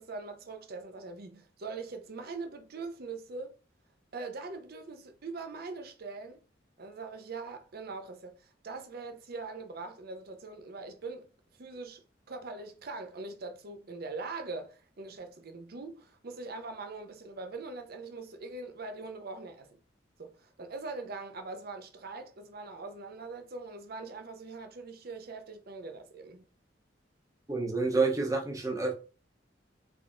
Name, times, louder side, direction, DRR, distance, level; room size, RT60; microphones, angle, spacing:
voice 1, 0.0-3.5 4.1-6.4 6.8-11.3 11.6-12.0 12.3-19.7 20.2-26.4, right 3 dB, 55° right, 0.6 m, -42 dB
voice 2, 27.5-28.9, right 3 dB, 20° right, 0.8 m, -28 dB
3.5 x 3.4 x 2.5 m
head